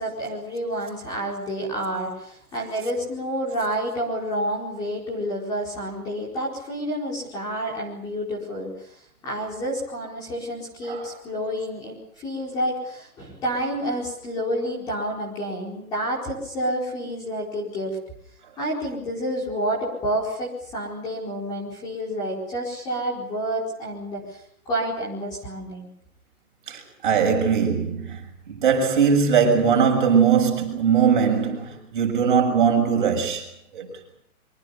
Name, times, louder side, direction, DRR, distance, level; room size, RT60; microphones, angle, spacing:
voice 1, 0.0-18.0 18.6-25.9, equal, 10° left, 4.6 m, -29 dB
voice 2, 26.7-33.5 33.7-33.9, right 6 dB, 35° right, 6.6 m, -20 dB
26.5 x 24.5 x 7.0 m
hypercardioid pair, 180°, 44 cm